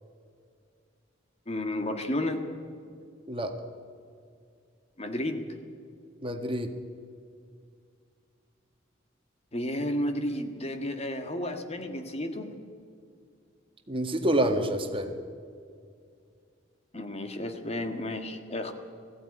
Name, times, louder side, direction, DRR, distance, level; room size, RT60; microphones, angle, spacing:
voice 1, 1.5-2.4 5.0-5.4 9.5-12.5 16.9-18.7, left 1 dB, 35° left, 6 dB, 1.7 m, -32 dB
voice 2, 6.2-6.7 13.9-15.1, right 1 dB, 30° right, 6 dB, 1.6 m, -27 dB
20.5 x 15.5 x 9.8 m, 2.2 s
head